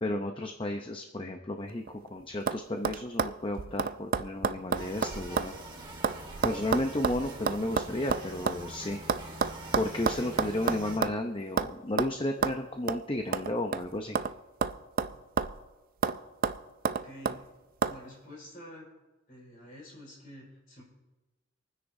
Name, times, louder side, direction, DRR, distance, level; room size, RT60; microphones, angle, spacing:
voice 1, 0.0-5.5 6.4-9.0 9.8-14.2, left 1 dB, 25° left, 4 dB, 0.7 m, -33 dB
sound 1, 1.7-2.1 2.5-2.6 2.8-5.6 5.8-8.6 9.1-11.2 11.6-11.7 12.0-12.1 12.4-12.6 12.9-13.0 13.3-14.3 14.6-15.7 16.0-16.2 16.4-17.4 17.8-18.0, right 5 dB, 45° right, 0.4 m, -30 dB
sound 2, 4.7-11.0, right 2 dB, 20° right, 1.8 m, -44 dB
voice 2, 16.9-17.4 17.9-18.9 19.3-20.8, equal, 40° left, -4 dB, 5.0 m, -48 dB
27.0 x 9.8 x 2.7 m, 1.2 s
head